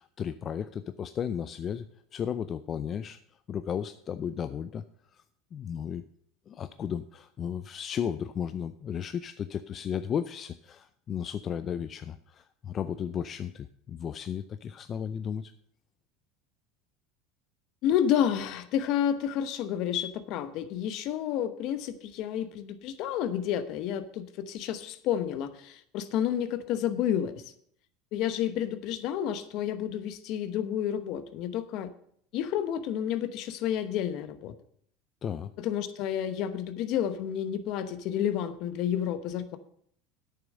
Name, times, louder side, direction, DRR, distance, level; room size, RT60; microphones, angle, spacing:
voice 1, 0.0-1.9 2.1-4.8 5.1-5.2 5.5-6.0 6.5-15.5 35.2-35.5, left 8 dB, 35° left, 11 dB, 0.4 m, -34 dB
voice 2, 17.8-27.4 28.1-31.9 32.3-34.5 35.6-39.6, left 10 dB, 60° left, 11 dB, 0.9 m, -30 dB
8.9 x 6.9 x 6.3 m, 0.66 s
supercardioid pair, 120°, 0 cm